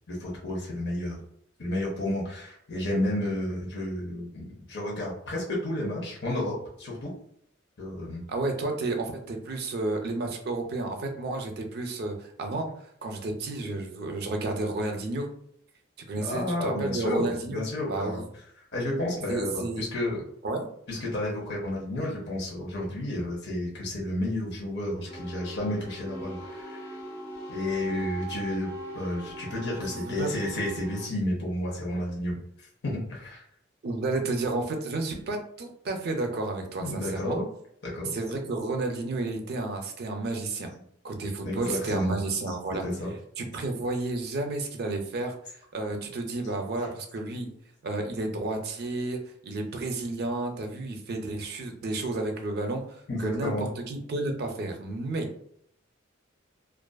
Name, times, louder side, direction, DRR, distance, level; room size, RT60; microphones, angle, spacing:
voice 1, 0.1-1.2 1.6-7.1 7.8-8.3 16.2-18.2 18.7-20.2 20.9-26.8 27.5-28.7 28.9-33.4 36.8-37.5 37.8-38.1 41.4-42.5 42.8-43.1 46.0-46.1 46.5-46.6 47.3-47.5 53.1-53.7, left 1 dB, 60° left, -3 dB, 0.7 m, -31 dB
voice 2, 8.3-12.7 13.0-15.3 16.1-18.2 19.3-19.8 20.4-20.7 29.8-30.3 33.8-37.4 38.1-40.7 41.0-42.8 43.4-45.3 45.7-47.5 47.8-55.3, right 2 dB, 55° right, 4 dB, 0.5 m, -31 dB
sound 1, 25.1-31.1, right 2 dB, 85° left, 1.0 m, -40 dB
2.4 x 2.4 x 2.2 m, 0.68 s
head